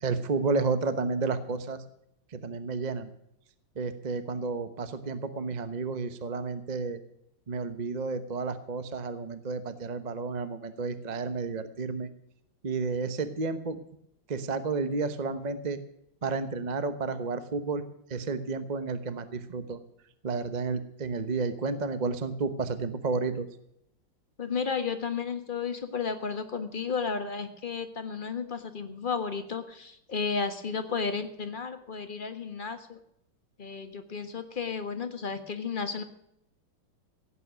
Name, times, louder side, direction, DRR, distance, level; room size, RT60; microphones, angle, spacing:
voice 1, 0.0-1.8 2.3-3.1 3.8-7.0 7.5-12.1 12.6-13.8 14.3-15.8 16.2-17.8 18.1-19.8 20.2-23.5, right 4 dB, 35° right, 11 dB, 0.7 m, -31 dB
voice 2, 24.4-33.0 33.6-36.0, left 5 dB, 30° left, 8 dB, 1.3 m, -33 dB
17.0 x 9.4 x 6.3 m, 0.76 s
omnidirectional pair, 2.3 m